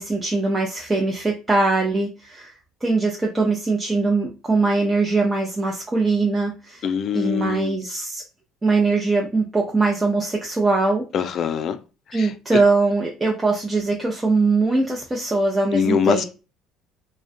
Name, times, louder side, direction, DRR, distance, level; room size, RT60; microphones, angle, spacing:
voice 1, 0.0-2.5 2.8-8.2 8.6-11.0 12.1-16.2, right 3 dB, 20° right, 0.5 m, -21 dB
voice 2, 6.8-7.7 11.1-11.8 12.1-12.3 15.7-16.2, left 7 dB, 55° left, 0.3 m, -23 dB
2.4 x 2.1 x 2.5 m
hypercardioid pair, 70°, 0 cm